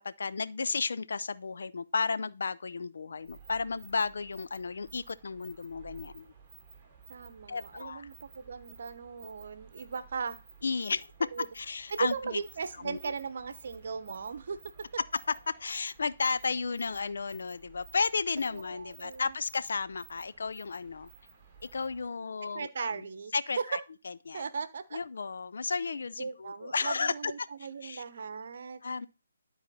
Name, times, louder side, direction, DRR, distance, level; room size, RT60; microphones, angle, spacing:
voice 1, 0.0-6.3 7.5-8.1 10.6-11.1 11.5-12.4 12.8-13.1 15.1-15.2 15.5-21.1 21.7-23.1 23.3-23.8 24.0-24.5 24.9-27.3 27.8-28.0 28.8-29.1, left 4 dB, 65° left, 0.5 m, -33 dB
sound 1, 3.2-22.1, right 6 dB, 15° right, 2.1 m, -55 dB
voice 2, 7.1-10.4 11.3-11.5 11.9-14.6 18.5-19.3 22.4-23.8 24.3-25.0 26.2-28.8, right 5 dB, 55° right, 0.9 m, -37 dB
12.0 x 4.1 x 4.1 m
figure-of-eight pair, 145°, 0 cm